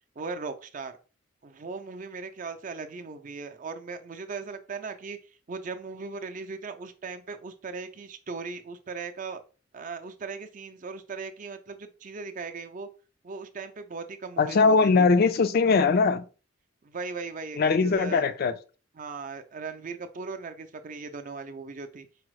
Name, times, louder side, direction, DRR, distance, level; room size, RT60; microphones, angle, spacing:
voice 1, 0.2-0.9 1.4-5.2 5.5-9.4 9.7-12.9 13.2-15.1 16.8-18.3 19.0-22.1, right 4 dB, 45° right, 0.5 m, -38 dB
voice 2, 14.4-16.3 17.6-18.5, left 4 dB, 50° left, 0.4 m, -21 dB
4.9 x 2.0 x 4.6 m
head